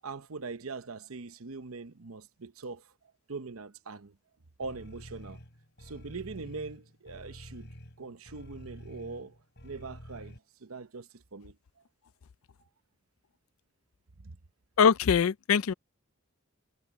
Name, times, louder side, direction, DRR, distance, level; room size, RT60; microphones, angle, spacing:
voice 1, 0.0-2.9 3.3-4.1 4.6-5.4 5.8-7.7 8.0-9.4 9.6-11.6 14.2-14.4, right 4 dB, 90° right, 0.9 m, -42 dB
sound 1, 4.6-10.4, equal, 55° left, 6.9 m, -49 dB
voice 2, 14.8-15.7, left 7 dB, 85° left, 0.4 m, -22 dB
head